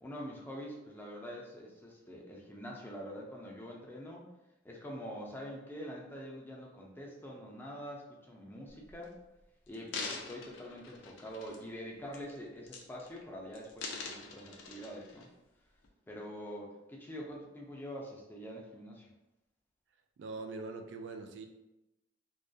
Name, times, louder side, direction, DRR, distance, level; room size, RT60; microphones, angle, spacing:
voice 1, 0.0-4.3 4.6-9.1 9.7-15.3 16.1-19.1, equal, 10° left, -2 dB, 0.4 m, -45 dB
sound 1, 8.9-9.0 9.7-11.8 12.1-12.4 12.7-13.2 13.5-15.3 15.8-15.9, left 4 dB, 85° left, 0.4 m, -44 dB
voice 2, 20.2-21.5, right 3 dB, 70° right, 5 dB, 0.3 m, -42 dB
2.3 x 2.2 x 2.6 m, 0.95 s
head